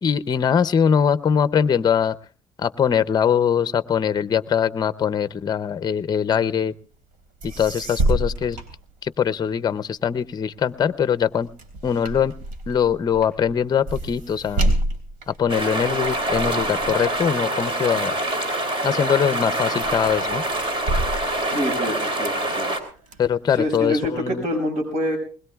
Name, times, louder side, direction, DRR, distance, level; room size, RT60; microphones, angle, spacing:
voice 1, 0.0-2.2 2.6-6.7 7.4-8.6 9.0-11.5 11.8-12.3 12.7-14.7 15.3-18.1 18.8-20.4 23.2-24.5, left 7 dB, 30° left, 14 dB, 0.6 m, -22 dB
sound 1, 7.1-7.2 7.4-9.5 10.0-18.6 19.1-19.5 19.8-22.3 22.8-23.8, right 1 dB, 75° right, 3.5 m, -29 dB
sound 2, 15.5-22.8, right 1 dB, 40° right, 3.4 m, -25 dB
voice 2, 21.5-22.7 23.5-25.2, equal, 55° right, 4 dB, 6.2 m, -26 dB
21.0 x 20.5 x 2.4 m, 0.39 s
cardioid pair, 115°, 14 cm